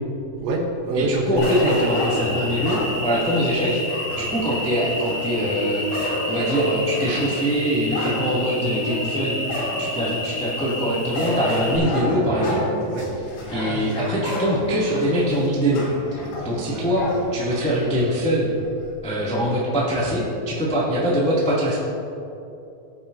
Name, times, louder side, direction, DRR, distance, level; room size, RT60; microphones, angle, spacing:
voice 1, 0.4-1.7 12.9-13.1 16.6-16.9, right 2 dB, 75° right, 1 dB, 3.2 m, -25 dB
voice 2, 0.9-3.8 4.1-5.8 6.3-9.4 9.8-12.7 13.4-15.8 16.1-18.5 19.0-21.8, equal, 10° left, -8 dB, 0.3 m, -23 dB
sound 1, 1.4-5.2 5.7-8.2 8.7-8.8 9.5-10.1 11.1-18.2 18.6-18.7 19.9-20.2, left 1 dB, 85° left, 5.0 m, -31 dB
Cricket, 1.4-11.8, left 1 dB, 65° left, 5.1 m, -29 dB
19.5 x 8.7 x 2.8 m, 2.8 s
omnidirectional pair, 5.4 m